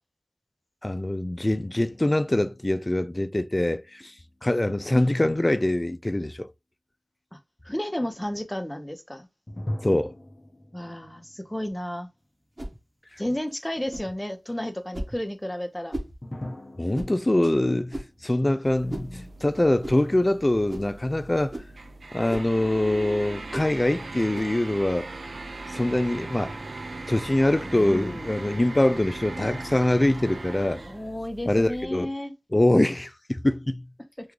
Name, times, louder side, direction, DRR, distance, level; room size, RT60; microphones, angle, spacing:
voice 1, 0.8-4.1 4.4-6.5 9.8-10.1 16.8-21.6 22.1-25.1 25.7-26.6 27.1-30.8 31.5-32.1 32.5-33.8, left 1 dB, 30° left, 0.3 m, -24 dB
sound 1, 1.7-5.0 9.5-12.5 12.8-12.9 16.2-19.5, left 1 dB, 45° left, 0.8 m, -42 dB
voice 2, 7.6-9.3 10.7-12.1 13.2-16.0 19.1-19.3 27.6-28.3 30.7-32.3, left 1 dB, 10° left, 0.7 m, -32 dB
sound 2, 12.6-12.8 13.9-14.1 14.9-15.2 15.9-16.1 16.9-17.2 17.9-18.2 18.9-19.1 19.8-20.0 20.7-20.9 21.5-21.7 22.3-22.5 23.5-23.7 24.3-24.5, right 1 dB, 40° right, 1.1 m, -35 dB
sound 3, 18.6-31.9, right 2 dB, 80° right, 0.4 m, -39 dB
3.6 x 2.3 x 3.1 m
cardioid pair, 40°, 0 cm